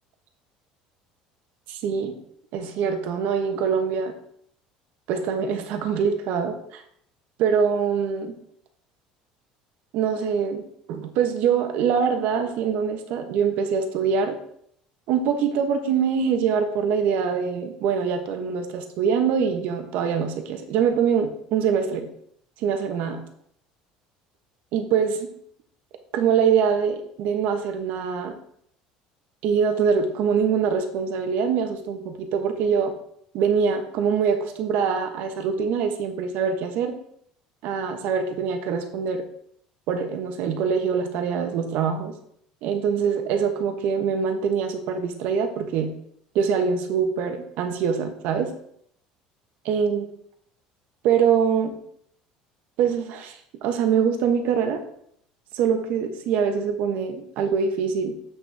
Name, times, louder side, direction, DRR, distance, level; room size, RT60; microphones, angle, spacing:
voice 1, 1.7-2.1 2.5-4.1 5.1-6.8 7.4-8.3 9.9-10.6 10.9-14.4 15.1-22.1 22.6-23.2 24.7-25.2 26.1-28.3 29.4-32.9 33.3-36.9 37.6-39.2 39.9-42.1 42.6-45.9 46.3-48.5 49.6-50.0 51.0-51.7 52.8-54.8 55.5-58.1, right 6 dB, 70° right, 6 dB, 1.1 m, -24 dB
7.8 x 6.4 x 3.5 m, 0.67 s
supercardioid pair, 105°, 3 cm